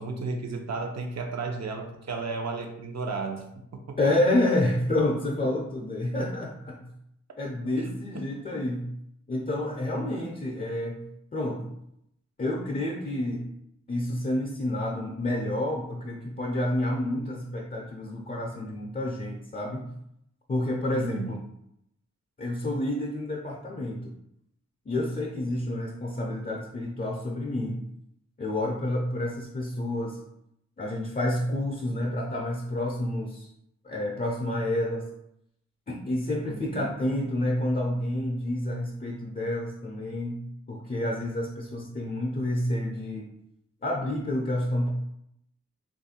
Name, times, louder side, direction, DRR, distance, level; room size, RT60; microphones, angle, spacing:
voice 1, 0.0-3.5 3.7-4.0 20.9-21.4 36.4-36.8, right 4 dB, 60° right, 3 dB, 0.7 m, -33 dB
voice 2, 4.0-6.8 7.4-8.9 9.3-11.0 11.3-11.7 12.4-13.4 13.9-19.9 20.5-21.4 22.4-24.1 24.9-27.8 28.4-30.2 30.8-33.5 33.8-35.1 35.9-43.3 43.8-44.9, left 1 dB, 30° left, -1 dB, 0.5 m, -29 dB
3.0 x 2.4 x 4.2 m, 0.78 s
wide cardioid pair, 105°, 30 cm